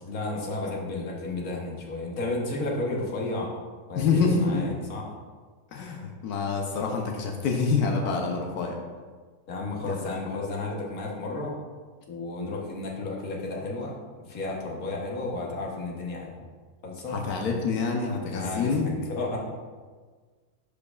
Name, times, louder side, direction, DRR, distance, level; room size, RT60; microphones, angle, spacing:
voice 1, 0.0-3.5 3.9-5.0 9.5-11.5 12.1-16.4 16.8-17.2 18.2-19.4, left 2 dB, 70° left, -2 dB, 1.6 m, -32 dB
voice 2, 3.9-4.7 5.7-8.8 9.8-10.2 17.1-18.9, left 4 dB, 85° left, 1 dB, 1.3 m, -27 dB
11.5 x 4.8 x 2.4 m, 1.5 s
omnidirectional pair, 1.6 m